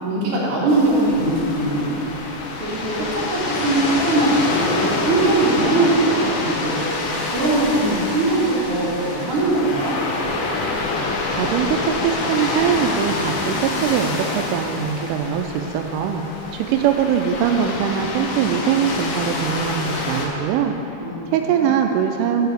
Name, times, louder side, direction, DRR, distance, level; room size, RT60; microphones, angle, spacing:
voice 1, 0.0-2.0 2.6-6.9 7.3-9.9 21.0-21.7, right 2 dB, 40° right, -8 dB, 2.1 m, -21 dB
sound 1, 0.7-20.3, left 3 dB, 75° left, 2.9 m, -26 dB
voice 2, 11.3-16.2 16.5-20.7 21.3-22.5, right 8 dB, 85° right, 5 dB, 3.0 m, -22 dB
7.2 x 6.8 x 7.9 m, 2.9 s
omnidirectional pair, 5.7 m